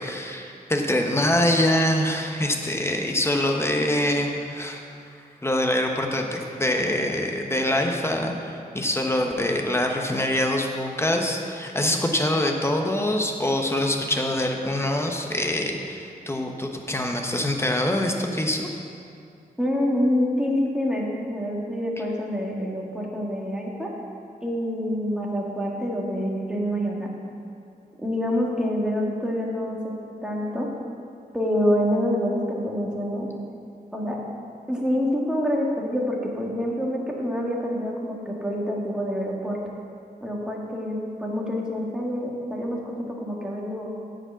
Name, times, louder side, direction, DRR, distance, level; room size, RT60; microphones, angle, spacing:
voice 1, 0.0-4.8 5.4-18.7, left 1 dB, 15° left, 2 dB, 1.0 m, -24 dB
voice 2, 19.6-23.9 24.4-27.1 28.0-29.9 30.2-30.7 31.3-33.3 33.9-34.2 34.7-39.6 40.2-43.9, equal, 5° right, -3 dB, 1.7 m, -26 dB
9.6 x 5.1 x 8.0 m, 2.5 s
wide cardioid pair, 100°, 16 cm